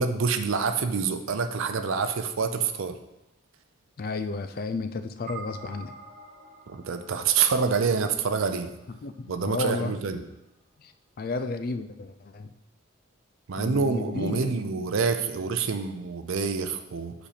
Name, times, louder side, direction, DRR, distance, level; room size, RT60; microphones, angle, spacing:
voice 1, 0.0-3.0 6.7-8.7 9.3-10.3 13.5-17.1, right 5 dB, 75° right, 8 dB, 0.5 m, -27 dB
voice 2, 4.0-5.9 9.0-10.0 10.8-10.9 11.2-12.5 13.6-14.5, left 3 dB, 45° left, 10 dB, 0.4 m, -32 dB
sound 1, 5.3-9.8, right 4 dB, 35° right, 1.4 m, -47 dB
5.0 x 4.3 x 5.0 m, 0.96 s
head